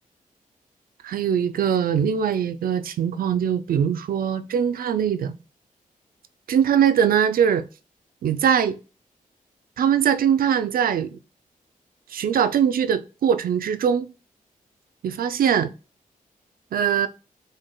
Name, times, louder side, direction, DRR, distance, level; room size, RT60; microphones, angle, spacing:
voice 1, 1.0-5.3 6.5-7.6 8.2-8.8 9.8-11.2 12.1-14.1 15.0-15.7 16.7-17.1, right 8 dB, 85° right, 0.5 m, -21 dB
5.3 x 3.7 x 2.3 m
wide cardioid pair, 110°, 15 cm